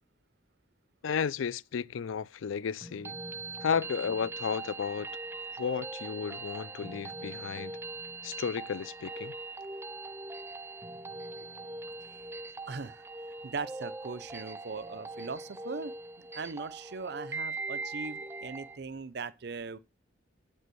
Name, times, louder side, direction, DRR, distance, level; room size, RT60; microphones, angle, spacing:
voice 1, 1.0-3.1 3.6-5.1 5.5-7.8 8.2-9.3, left 6 dB, 90° left, 0.4 m, -33 dB
sound 1, 2.8-18.8, right 3 dB, 15° right, 0.5 m, -41 dB
voice 2, 12.7-13.0 13.4-19.8, right 4 dB, 55° right, 0.6 m, -40 dB
8.3 x 5.5 x 7.7 m
head